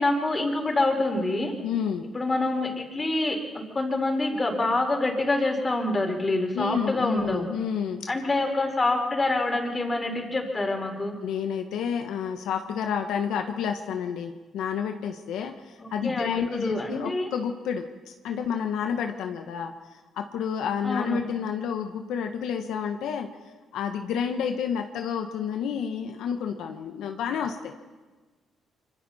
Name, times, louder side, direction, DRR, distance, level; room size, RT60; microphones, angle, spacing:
voice 1, 0.0-1.5 2.1-7.5 8.1-11.1 15.8-17.3 20.8-21.2, left 2 dB, 25° left, 2 dB, 4.4 m, -26 dB
voice 2, 1.6-2.1 6.5-8.1 11.2-23.3 23.7-27.7, left 7 dB, 85° left, 5 dB, 1.2 m, -30 dB
25.5 x 24.5 x 4.3 m, 1.3 s
cardioid pair, 90°, 0 cm